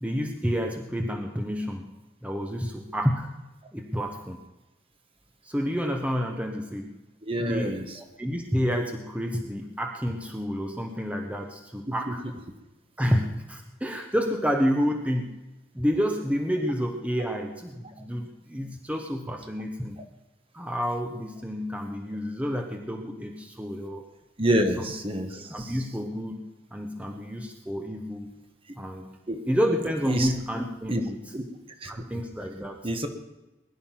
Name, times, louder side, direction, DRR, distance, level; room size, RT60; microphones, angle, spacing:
voice 1, 0.0-1.9 2.2-3.3 3.7-4.4 5.4-6.9 7.4-12.3 13.0-15.4 15.7-20.0 20.5-24.1 24.8-24.9 25.3-28.3 28.8-29.1 29.5-31.2 31.8-32.9, equal, 5° right, 3 dB, 1.1 m, -29 dB
voice 2, 7.3-7.8 24.4-25.5 29.3-29.4 30.1-30.3 30.9-31.0 31.3-31.4 31.8-31.9 32.8-33.1, right 1 dB, 30° right, 6 dB, 1.4 m, -26 dB
20.5 x 11.0 x 5.9 m, 1.0 s
head